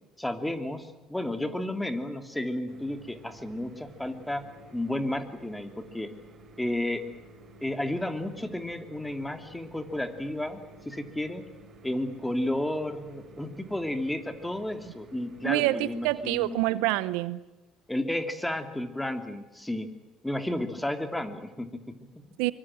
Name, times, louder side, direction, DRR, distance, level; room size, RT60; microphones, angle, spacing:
voice 1, 0.2-4.5 4.7-6.1 6.6-7.0 7.6-11.4 11.8-16.6 17.9-19.9 20.2-22.2, left 1 dB, 10° left, 3.0 m, -32 dB
sound 1, 2.7-16.7, right 1 dB, 45° right, 7.5 m, -52 dB
voice 2, 15.4-17.4 22.4-22.5, right 17 dB, 75° right, 0.8 m, -26 dB
24.5 x 24.0 x 7.7 m
hypercardioid pair, 65°, 0 cm